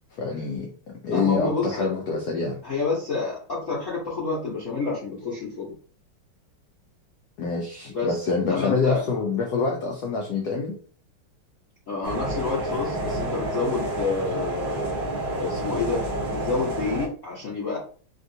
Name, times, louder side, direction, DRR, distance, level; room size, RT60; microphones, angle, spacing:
voice 1, 0.1-0.7 1.0-2.6 7.4-10.8, left 4 dB, 90° left, 1 dB, 0.8 m, -26 dB
voice 2, 1.1-1.9 2.6-5.7 7.9-9.0 11.9-14.8 15.4-17.8, left 4 dB, 50° left, -7 dB, 1.0 m, -28 dB
sound 1, 12.0-17.1, right 1 dB, 50° right, 0.5 m, -29 dB
3.5 x 2.5 x 2.6 m, 0.43 s
omnidirectional pair, 2.3 m